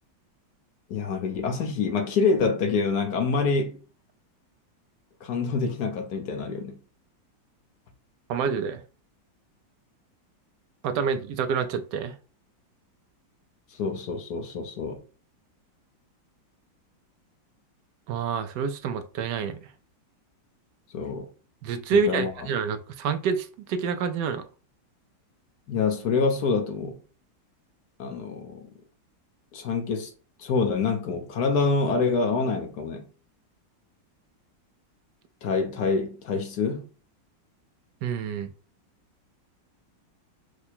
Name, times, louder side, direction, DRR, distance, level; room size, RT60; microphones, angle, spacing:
voice 1, 0.9-3.8 5.2-6.8 13.7-15.0 20.9-21.3 21.9-22.3 25.7-27.0 28.0-28.7 29.5-30.1 30.4-33.0 35.4-36.9, left 4 dB, 60° left, 1.3 m, -26 dB
voice 2, 8.3-8.8 10.8-12.1 18.1-19.6 21.6-24.5 38.0-38.5, right 6 dB, 75° right, 1.1 m, -27 dB
4.8 x 2.3 x 4.2 m
omnidirectional pair, 2.0 m